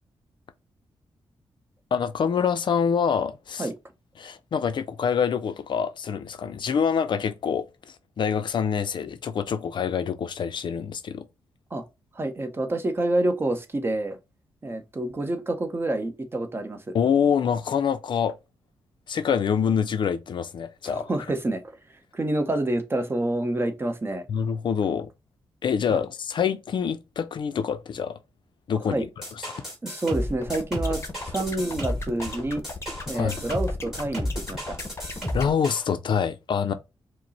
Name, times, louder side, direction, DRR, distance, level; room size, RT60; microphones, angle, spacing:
voice 1, 1.9-3.7 4.2-11.3 16.9-18.4 19.1-21.1 24.3-25.1 25.6-28.2 28.7-29.5 33.1-33.4 35.3-36.7, left 7 dB, 55° left, 0.4 m, -26 dB
voice 2, 12.1-14.2 14.6-16.9 20.8-21.6 22.1-24.3 25.9-26.0 28.9-29.1 29.8-32.6 33.1-34.8, right 1 dB, 25° right, 0.8 m, -28 dB
sound 1, 29.2-35.9, equal, 5° right, 2.4 m, -32 dB
sound 2, 30.4-35.5, left 3 dB, 30° left, 0.8 m, -37 dB
5.1 x 2.0 x 4.1 m
cardioid pair, 105°, 9 cm